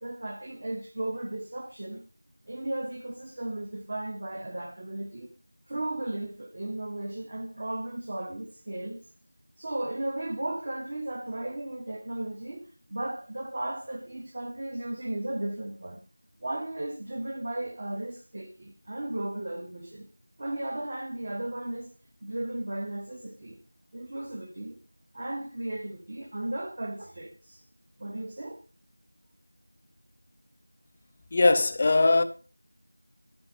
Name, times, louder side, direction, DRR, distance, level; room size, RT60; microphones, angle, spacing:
voice 1, 0.0-2.0 2.5-5.3 5.7-9.0 9.6-16.0 16.4-20.1 20.4-21.9 22.2-23.6 23.9-24.8 25.1-27.6 28.0-28.6, right 1 dB, 25° right, 1.3 m, -35 dB
voice 2, 31.3-32.2, left 3 dB, 20° left, 0.6 m, -20 dB
14.5 x 5.2 x 6.6 m
figure-of-eight pair, 175°, 0 cm